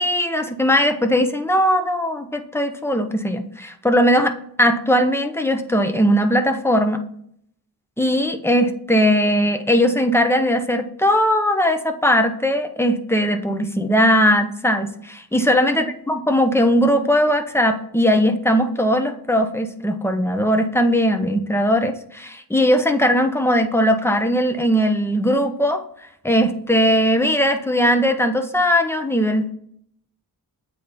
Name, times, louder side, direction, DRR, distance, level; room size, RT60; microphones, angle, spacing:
voice 1, 0.0-4.3 4.6-7.0 8.0-25.8 26.2-29.5, equal, 5° left, 6 dB, 0.7 m, -19 dB
8.2 x 3.4 x 4.1 m, 0.68 s
wide cardioid pair, 65°, 38 cm